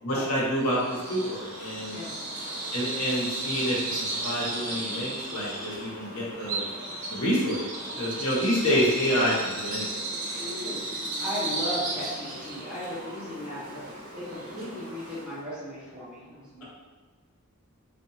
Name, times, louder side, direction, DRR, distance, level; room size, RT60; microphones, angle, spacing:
voice 1, 0.0-2.0 2.7-3.8 4.2-6.6 7.1-7.6 8.0-9.9, equal, 80° left, -5 dB, 0.8 m, -27 dB
Bird vocalization bird call bird song, 0.6-15.4, right 2 dB, 75° right, 0.7 m, -35 dB
voice 2, 10.4-16.6, equal, 5° right, -13 dB, 1.3 m, -37 dB
2.7 x 2.2 x 2.8 m, 1.4 s
head